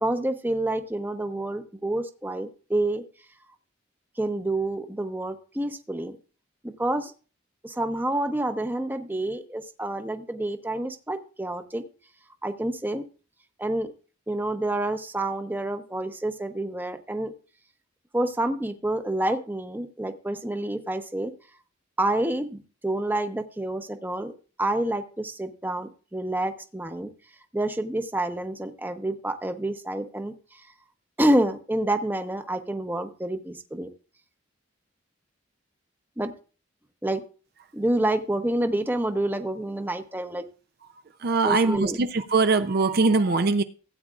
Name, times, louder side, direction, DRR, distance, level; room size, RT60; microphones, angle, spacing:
voice 1, 0.0-3.0 4.2-6.2 6.6-7.1 7.6-11.8 12.4-13.0 13.6-13.9 14.3-17.3 18.1-21.3 22.0-24.3 24.6-27.1 27.5-30.6 31.2-33.9 36.2-36.3 37.0-37.2 37.7-40.4 41.4-42.0, right 1 dB, 10° right, 0.7 m, -28 dB
voice 2, 41.2-43.6, right 3 dB, 50° right, 0.5 m, -22 dB
16.0 x 8.6 x 2.4 m
head